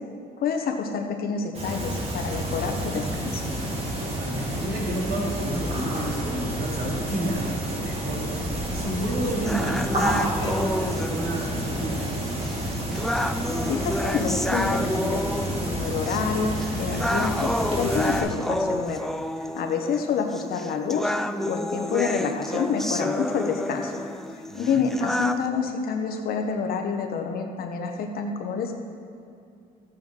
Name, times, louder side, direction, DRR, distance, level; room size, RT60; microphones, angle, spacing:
voice 1, 0.4-3.4 13.7-15.2 15.7-19.1 19.4-21.1 21.5-24.0 24.5-28.7, left 5 dB, 65° left, 4 dB, 1.3 m, -28 dB
sound 1, 1.5-18.2, right 1 dB, 35° right, 2.8 m, -29 dB
voice 2, 3.9-12.2 24.5-24.8, right 1 dB, 65° right, -3 dB, 2.9 m, -31 dB
sound 2, 9.5-25.5, left 1 dB, ahead, 0.4 m, -30 dB
13.5 x 9.0 x 4.6 m, 2.5 s
cardioid pair, 110°, 17 cm